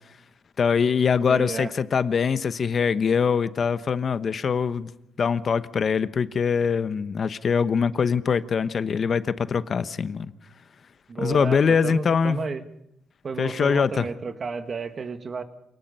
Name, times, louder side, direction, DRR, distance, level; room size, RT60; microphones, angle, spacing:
voice 1, 0.6-4.9 5.2-10.3 11.2-12.4 13.4-14.1, left 6 dB, 45° left, 1.0 m, -23 dB
voice 2, 1.3-1.7 11.1-12.6 13.2-15.4, right 4 dB, 40° right, 1.9 m, -32 dB
28.0 x 19.0 x 5.6 m
cardioid pair, 90°, 0 cm